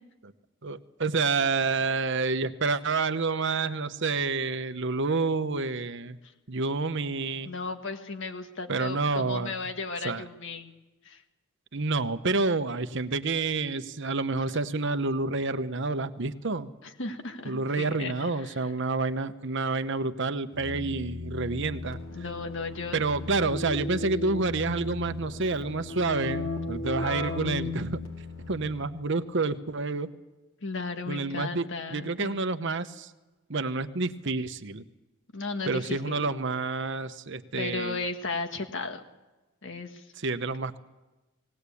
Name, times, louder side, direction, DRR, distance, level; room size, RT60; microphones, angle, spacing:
voice 1, 0.6-6.2 6.5-7.5 8.7-9.5 10.0-10.2 11.7-16.7 17.4-22.0 22.9-28.0 28.5-30.1 31.1-33.1 33.5-34.8 35.7-38.0 40.2-40.8, right 3 dB, 60° right, 10 dB, 1.0 m, -29 dB
voice 2, 7.4-10.7 11.0-11.2 16.8-18.5 22.1-23.0 30.6-32.4 35.3-36.2 37.6-39.0 39.6-40.1, left 3 dB, 60° left, 6 dB, 1.7 m, -35 dB
Keyboard (musical), 20.5-29.0, left 2 dB, 75° left, 4.6 m, -36 dB
19.0 x 18.5 x 8.4 m, 1.1 s
head